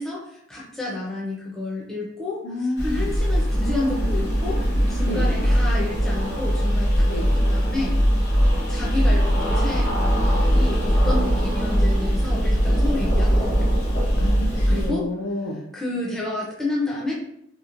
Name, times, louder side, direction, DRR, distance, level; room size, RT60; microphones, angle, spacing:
voice 1, 0.0-2.4 2.8-4.6 4.9-8.0 8.7-9.9 10.5-13.7 14.7-15.1 15.7-17.1, left 2 dB, 5° left, -5 dB, 0.4 m, -30 dB
voice 2, 2.4-3.2 5.1-5.3 7.0-7.3 14.2-15.6, left 1 dB, 85° left, -3 dB, 0.4 m, -30 dB
sound 1, 2.8-14.9, equal, 60° left, 0.9 m, -21 dB
2.9 x 2.1 x 2.4 m, 0.74 s
head